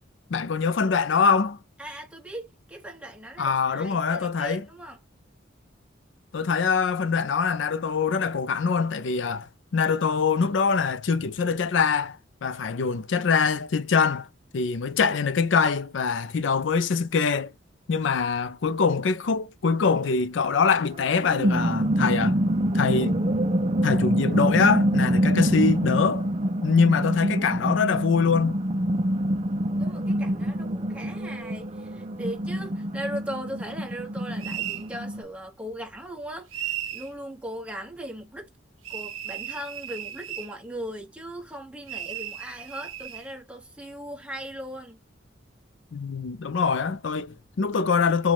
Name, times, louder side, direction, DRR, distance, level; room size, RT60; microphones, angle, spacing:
voice 1, 0.3-1.6 3.4-4.6 6.3-14.3 14.5-17.5 17.9-22.4 22.7-23.2 23.8-26.3 26.6-28.6 45.9-48.3, left 5 dB, 65° left, 0.4 m, -24 dB
voice 2, 1.8-5.0 29.8-38.5 38.9-45.0, equal, 5° right, 1.2 m, -38 dB
sound 1, 21.0-35.2, right 1 dB, 30° right, 0.4 m, -26 dB
sound 2, 34.4-34.9 36.5-37.1 38.8-40.5 41.9-43.3, right 11 dB, 85° right, 0.7 m, -35 dB
4.9 x 2.3 x 3.5 m
head